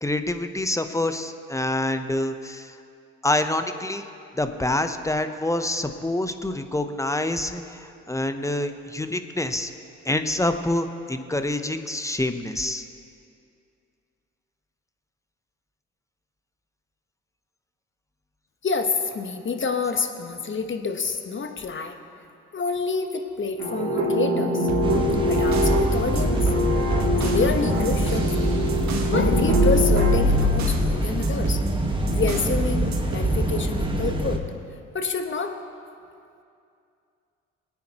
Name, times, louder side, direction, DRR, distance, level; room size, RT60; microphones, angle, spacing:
voice 1, 0.0-2.7 3.2-4.1 4.4-9.7 10.0-12.8, left 1 dB, 10° left, 8 dB, 0.9 m, -26 dB
voice 2, 18.6-21.9 22.5-24.7 25.3-26.5 27.2-28.5 29.1-31.6 32.1-34.4 34.9-35.5, left 5 dB, 35° left, 5 dB, 1.3 m, -28 dB
sound 1, 23.6-30.1, left 1 dB, 85° right, 2.4 m, -24 dB
sound 2, 24.6-25.8 26.1-29.2 29.5-30.9 31.2-32.6 32.9-33.3, right 5 dB, 55° right, 1.5 m, -33 dB
sound 3, 24.8-34.4, right 1 dB, 15° right, 1.5 m, -24 dB
22.0 x 9.4 x 3.0 m, 2.5 s
hypercardioid pair, 50°, 33 cm